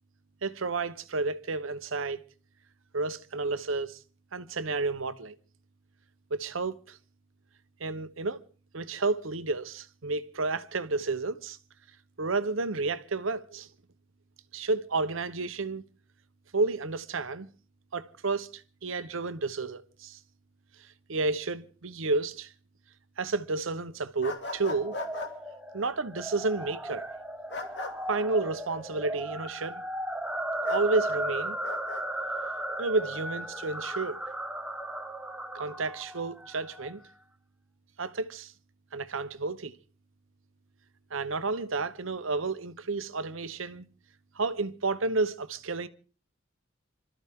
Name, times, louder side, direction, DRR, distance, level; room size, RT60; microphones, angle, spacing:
voice 1, 0.4-2.2 2.9-4.0 4.3-5.3 6.3-7.0 7.8-8.4 8.7-11.6 12.2-13.7 14.5-15.8 16.5-17.5 17.9-20.2 21.1-22.5 23.2-24.9 25.7-27.1 28.1-29.8 30.7-31.6 32.8-34.2 35.5-37.0 38.0-38.5 38.9-39.8 41.1-43.9 44.3-45.9, right 3 dB, 85° right, 1.0 m, -31 dB
sound 1, 24.2-25.3 27.5-27.9 30.6-30.9 31.6-32.0, left 3 dB, 60° left, 2.6 m, -37 dB
sound 2, 24.5-36.9, right 1 dB, 5° right, 1.1 m, -36 dB
27.0 x 13.5 x 3.7 m
head